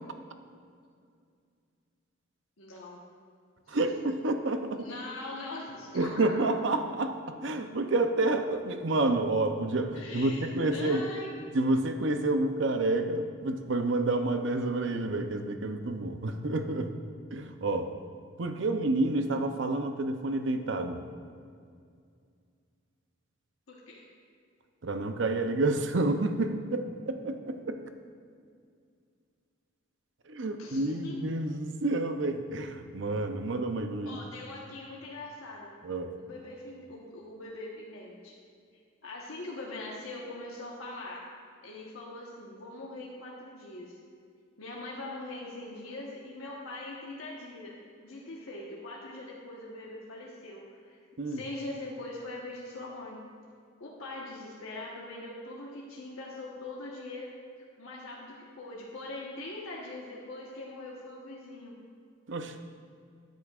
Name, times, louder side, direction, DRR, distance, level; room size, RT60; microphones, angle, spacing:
voice 1, 2.6-3.0 3.7-3.8 4.7-6.4 9.9-11.3 23.7-24.0 30.5-31.2 34.1-35.8 36.2-38.3 39.0-41.2 41.6-44.0 44.6-51.0 51.2-53.2 53.8-57.3 57.8-61.8, left 2 dB, 90° left, -4 dB, 1.2 m, -42 dB
voice 2, 3.7-4.9 5.9-7.2 7.4-11.0 11.5-16.9 17.3-17.9 18.4-21.0 24.8-27.8 30.3-34.2 35.8-36.1 51.2-51.4 62.3-62.5, right 2 dB, 65° right, 7 dB, 0.6 m, -29 dB
13.0 x 10.5 x 2.4 m, 2.2 s
head